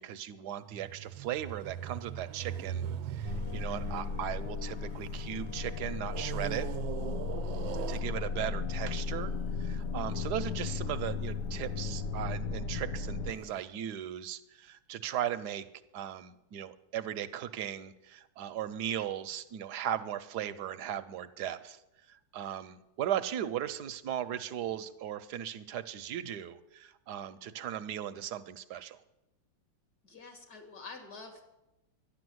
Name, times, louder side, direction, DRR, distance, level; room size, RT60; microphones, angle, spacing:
voice 1, 0.0-6.7 7.9-9.3 9.6-15.7 15.9-21.8 22.1-29.0, right 10 dB, 65° right, 12 dB, 1.1 m, -37 dB
sound 1, 0.6-5.3 6.1-8.6 9.3-9.4, right 10 dB, 85° right, 1.4 m, -40 dB
sound 2, 3.2-13.6, left 4 dB, 65° left, 1.3 m, -35 dB
voice 2, 30.0-31.4, left 4 dB, 50° left, 4 dB, 2.9 m, -47 dB
12.5 x 10.5 x 7.8 m, 0.93 s
omnidirectional pair, 2.1 m